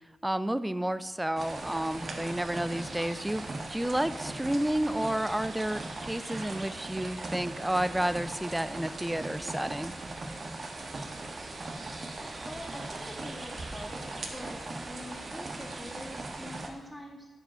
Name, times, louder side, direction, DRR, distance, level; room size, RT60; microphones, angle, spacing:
voice 1, 0.2-9.9, right 1 dB, 10° right, 14 dB, 0.5 m, -31 dB
sound 1, 1.4-16.7, right 2 dB, 50° right, 1.4 m, -39 dB
Wind instrument woodwind instrument, 1.6-4.8 5.1-8.5, right 3 dB, 85° right, 1.7 m, -55 dB
voice 2, 12.5-14.0 14.3-17.3, equal, 5° left, -3 dB, 2.4 m, -44 dB
9.3 x 5.1 x 6.2 m, 1.3 s
cardioid pair, 55°, 0 cm